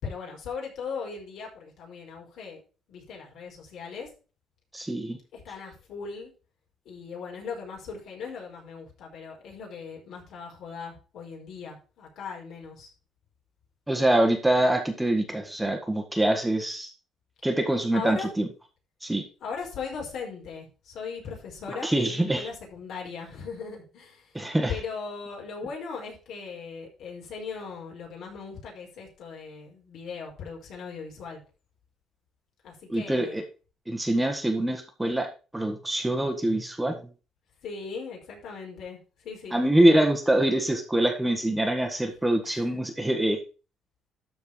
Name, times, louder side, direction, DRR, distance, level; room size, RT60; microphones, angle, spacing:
voice 1, 0.0-2.6 2.9-4.1 5.3-6.3 6.8-12.9 17.9-18.3 19.4-24.4 24.7-31.4 32.6-33.4 37.6-39.6 42.0-42.1 42.4-42.7, left 5 dB, 65° left, 0 dB, 4.9 m, -38 dB
voice 2, 4.7-5.2 13.9-16.9 17.4-18.5 19.0-19.2 21.8-22.5 24.3-24.7 32.9-33.4 33.9-37.0 39.5-43.4, right 1 dB, 5° right, 5 dB, 1.5 m, -24 dB
13.0 x 4.6 x 5.0 m, 0.34 s
cardioid pair, 130°, 0 cm